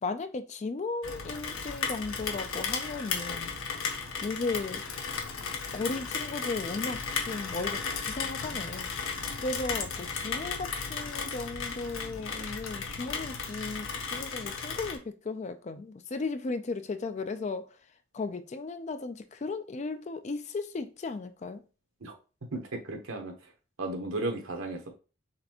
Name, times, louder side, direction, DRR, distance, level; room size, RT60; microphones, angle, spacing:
voice 1, 0.0-3.6 4.2-4.8 5.7-17.8 18.1-21.6, left 3 dB, 35° left, 0.3 m, -36 dB
Rain, 1.0-15.0, left 5 dB, 75° left, 0.7 m, -35 dB
voice 2, 22.5-23.5 23.8-24.9, right 2 dB, 80° right, 1.0 m, -35 dB
4.1 x 3.4 x 2.9 m
head